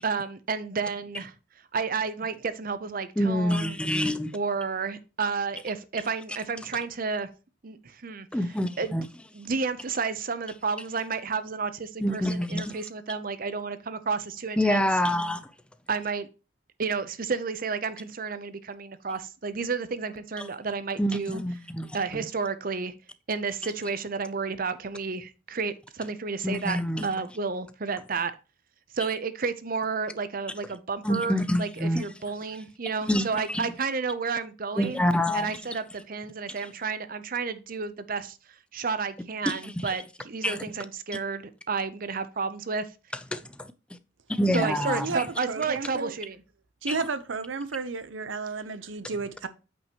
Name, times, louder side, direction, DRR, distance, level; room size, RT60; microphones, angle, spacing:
voice 1, 0.0-1.3 1.7-3.8 4.3-7.3 7.6-8.3 8.8-9.0 9.3-14.8 15.9-16.3 16.8-21.4 21.9-22.9 23.3-28.3 28.9-35.0 35.3-38.4 38.7-42.9 44.5-46.4, right 5 dB, 45° right, 0.7 m, -31 dB
voice 2, 3.2-4.4 8.3-9.1 12.0-12.8 14.6-15.5 20.4-20.5 21.0-22.3 26.4-27.1 31.0-32.0 33.0-33.7 34.8-35.8 36.6-36.7 39.5-39.9 40.4-40.6 43.3-43.7 44.3-45.2 46.9-47.0, equal, 5° left, 0.5 m, -27 dB
voice 3, 44.5-45.2 45.5-46.1 46.8-49.5, right 4 dB, 85° right, 0.8 m, -32 dB
8.8 x 5.3 x 3.0 m
head